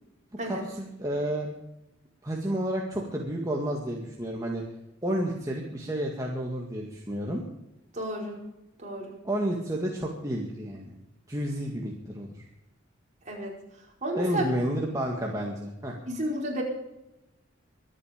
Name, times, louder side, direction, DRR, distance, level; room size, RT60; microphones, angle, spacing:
voice 1, 0.4-1.5 2.2-4.6 5.0-7.4 9.2-10.9 11.3-12.5 14.1-15.9, right 1 dB, 15° right, -1 dB, 1.9 m, -31 dB
voice 2, 7.9-8.4 8.8-9.2 13.2-13.5 14.0-14.5 16.0-16.6, right 1 dB, 35° right, -1 dB, 4.9 m, -32 dB
24.0 x 8.8 x 5.2 m, 0.90 s
head